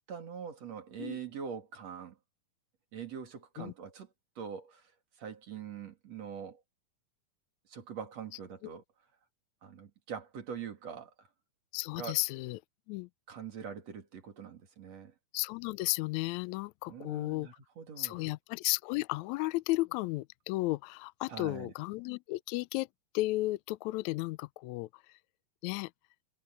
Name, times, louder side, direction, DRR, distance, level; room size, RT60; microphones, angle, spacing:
voice 1, 0.1-2.2 2.9-4.1 4.4-4.9 5.2-6.6 7.7-8.8 9.6-11.3 11.9-12.2 13.3-15.1 16.9-18.3 21.3-21.7, right 7 dB, 55° right, 3.6 m, -43 dB
voice 2, 11.7-12.6 12.9-13.1 15.3-17.5 18.0-22.9 23.1-24.9 25.6-25.9, left 21 dB, 85° left, 1.6 m, -34 dB
omnidirectional pair, 3.8 m